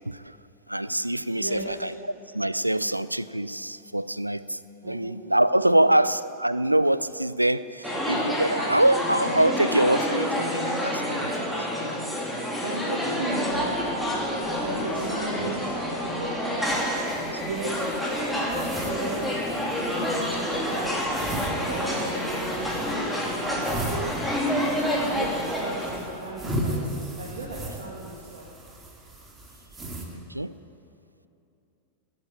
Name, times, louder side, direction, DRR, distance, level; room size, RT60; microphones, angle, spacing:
voice 1, 0.1-0.4 0.7-1.9 2.3-11.7 17.3-17.4 25.1-25.3 30.1-30.6, right 1 dB, 85° right, 16 dB, 0.4 m, -25 dB
voice 2, 1.4-1.8 4.8-5.1 5.6-5.8 12.6-14.0 14.6-16.8 17.3-21.2 21.6-22.8 23.2-23.7 24.7-28.6, right 2 dB, 60° right, -4 dB, 2.3 m, -36 dB
sound 1, 7.8-26.0, equal, ahead, 2.9 m, -28 dB
sound 2, 11.3-22.0, left 3 dB, 75° left, 3.9 m, -44 dB
sound 3, 16.6-30.0, right 1 dB, 15° right, 2.4 m, -37 dB
18.5 x 8.6 x 9.0 m, 2.8 s
figure-of-eight pair, 90°, 0 cm